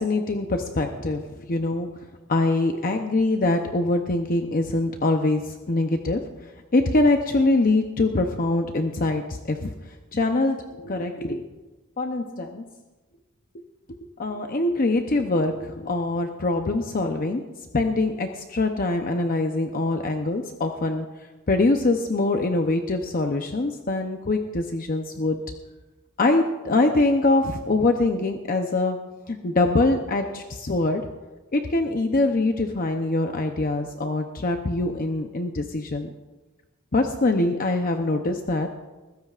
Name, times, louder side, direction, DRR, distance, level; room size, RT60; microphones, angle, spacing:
voice 1, 0.0-6.3 6.7-9.7 10.1-11.5 12.0-12.6 14.2-17.4 17.7-21.1 21.5-25.4 26.2-31.1 31.5-36.1 36.9-38.7, left 2 dB, 40° left, 4 dB, 0.7 m, -24 dB
21.0 x 15.5 x 2.5 m, 1.2 s
head